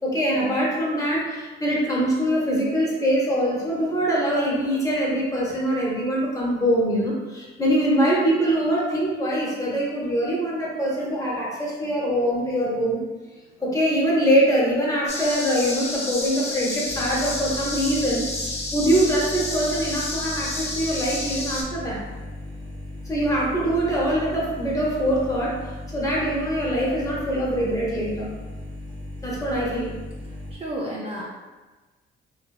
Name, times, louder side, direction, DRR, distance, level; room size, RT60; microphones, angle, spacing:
voice 1, 0.0-13.0 13.6-22.0 23.0-25.7 25.9-28.3 29.2-29.9, equal, 15° left, -5 dB, 0.8 m, -23 dB
sound 1, 15.1-21.6, left 2 dB, 35° left, 0.5 m, -30 dB
sound 2, 16.8-30.5, left 1 dB, 70° right, 0.6 m, -37 dB
voice 2, 30.5-31.3, equal, 30° right, -4 dB, 0.4 m, -31 dB
2.8 x 2.0 x 2.3 m, 1.2 s
cardioid pair, 90°, 20 cm